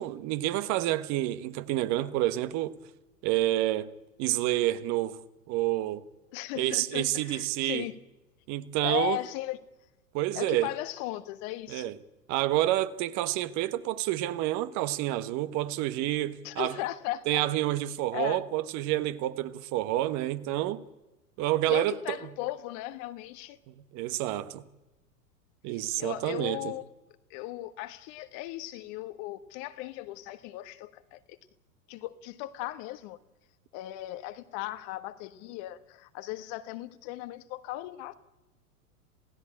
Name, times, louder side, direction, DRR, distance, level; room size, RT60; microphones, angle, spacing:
voice 1, 0.0-2.8 3.2-3.9 4.2-5.2 5.5-6.0 6.6-7.9 8.5-9.2 10.1-10.7 11.7-12.0 12.3-16.8 17.3-20.8 21.4-22.2 23.7-24.6 25.6-26.7, right 15 dB, 35° right, 1.3 m, -29 dB
voice 2, 6.3-7.9 8.8-9.6 10.3-11.9 16.4-17.4 18.1-18.4 21.7-23.6 25.7-26.8 27.3-31.4 31.9-33.2 33.7-38.1, left 16 dB, 40° left, 1.4 m, -37 dB
27.5 x 16.5 x 8.8 m
figure-of-eight pair, 95°, 46 cm